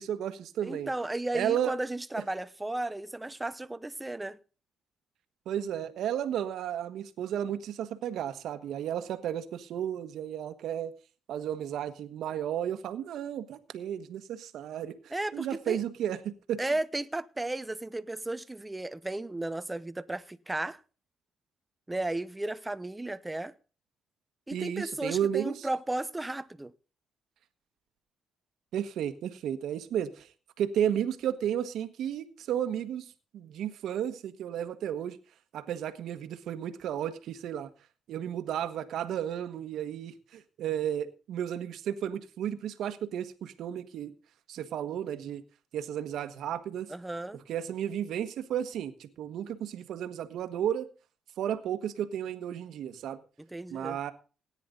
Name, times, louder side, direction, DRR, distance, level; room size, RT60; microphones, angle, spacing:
voice 1, 0.0-0.9 1.3-1.7 5.4-10.9 11.3-16.6 24.5-25.7 28.7-30.3 30.6-35.2 35.5-37.7 38.1-44.1 44.5-45.4 45.7-46.9 47.3-50.9 51.4-53.2 53.7-54.1, right 10 dB, 75° right, 1.4 m, -33 dB
voice 2, 0.6-4.4 15.1-15.8 16.6-20.8 21.9-23.5 24.5-26.7 46.9-47.4 53.4-54.0, right 2 dB, 15° right, 0.9 m, -34 dB
17.5 x 9.8 x 3.9 m
cardioid pair, 90°, 0 cm